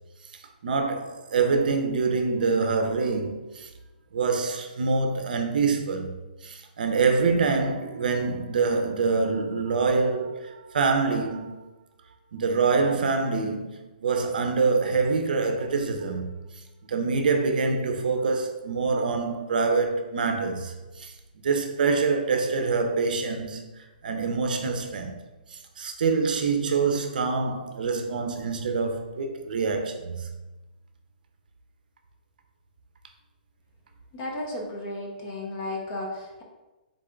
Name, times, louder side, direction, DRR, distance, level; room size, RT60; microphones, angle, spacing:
voice 1, 0.6-3.7 4.1-6.2 6.4-11.7 12.3-16.4 16.9-21.1 21.4-25.2 25.5-30.3, right 4 dB, 60° right, 0.6 m, -25 dB
voice 2, 34.1-36.4, left 1 dB, 25° left, 0.7 m, -34 dB
3.9 x 3.4 x 3.7 m
hypercardioid pair, 175°, 5 cm